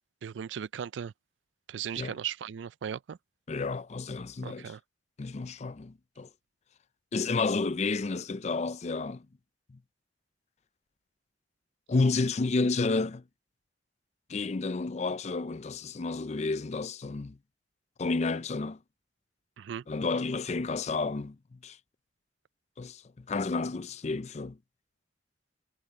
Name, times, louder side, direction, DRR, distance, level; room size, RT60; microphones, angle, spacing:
voice 1, 0.2-1.1 1.7-3.2 4.4-4.8 19.6-19.8, right 8 dB, 90° right, 0.4 m, -37 dB
voice 2, 3.5-4.7 5.2-6.3 7.1-9.3 9.7-9.8 11.9-13.2 14.3-17.4 18.0-18.8 19.9-21.8 22.8-24.6, left 3 dB, 40° left, 0.5 m, -31 dB
head